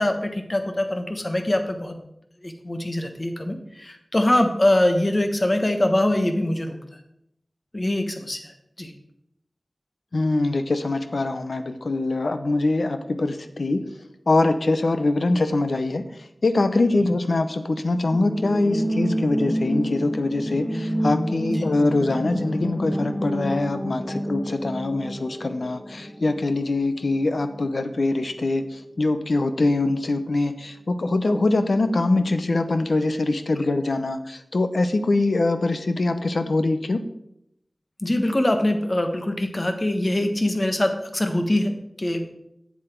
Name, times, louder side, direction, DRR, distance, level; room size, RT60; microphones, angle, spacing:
voice 1, 0.0-1.9 2.4-6.8 7.7-8.5 8.8-8.9 21.5-21.6 38.0-42.3, left 1 dB, 40° left, 6 dB, 1.1 m, -23 dB
voice 2, 10.1-13.8 14.3-16.0 16.4-37.0, left 2 dB, 80° left, 9 dB, 0.6 m, -23 dB
sound 1, 18.1-27.7 28.0-28.1, equal, 5° left, 1.1 m, -29 dB
7.4 x 7.3 x 4.4 m, 0.79 s
wide cardioid pair, 50°, 0 cm